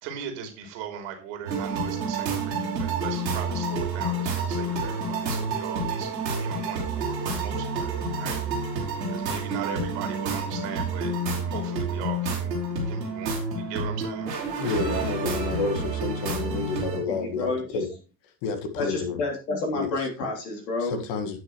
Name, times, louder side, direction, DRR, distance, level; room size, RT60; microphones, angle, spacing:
voice 1, 0.0-6.1 6.4-11.1 11.4-12.6 12.9-14.3, right 8 dB, 65° right, 4 dB, 3.1 m, -38 dB
sound 1, 1.5-17.0, right 3 dB, 85° right, 3.6 m, -29 dB
voice 2, 14.5-17.9 18.4-19.2 19.7-20.1 20.8-21.4, left 4 dB, 60° left, 7 dB, 1.9 m, -30 dB
voice 3, 17.1-17.8 18.8-21.0, left 3 dB, 75° left, 0 dB, 3.4 m, -30 dB
17.0 x 6.2 x 3.1 m, 0.35 s
figure-of-eight pair, 60°, 49 cm